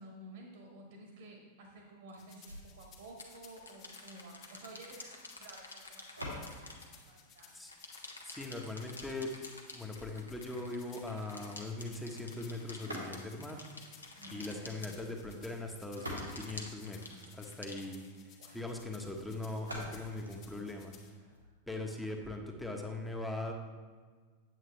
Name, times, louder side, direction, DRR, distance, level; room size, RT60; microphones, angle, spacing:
voice 1, 0.0-6.6 7.1-7.5 14.1-14.7 18.4-18.6, right 2 dB, 60° right, 1 dB, 1.6 m, -52 dB
sound 1, 2.1-2.2 3.0-7.4 7.7-15.5 16.0-18.4, left 3 dB, 80° left, 1.2 m, -50 dB
sound 2, 2.2-21.1, left 7 dB, 35° left, 1.7 m, -59 dB
sound 3, 2.4-8.3 12.7-13.6 15.6-17.6 19.6-21.6, equal, 85° right, 2.1 m, -48 dB
voice 2, 8.2-9.3 9.7-13.6 14.3-18.0 18.5-20.9 21.7-23.5, left 2 dB, 5° left, 2 dB, 1.2 m, -40 dB
9.2 x 8.5 x 3.3 m, 1.5 s
figure-of-eight pair, 90°, 0 cm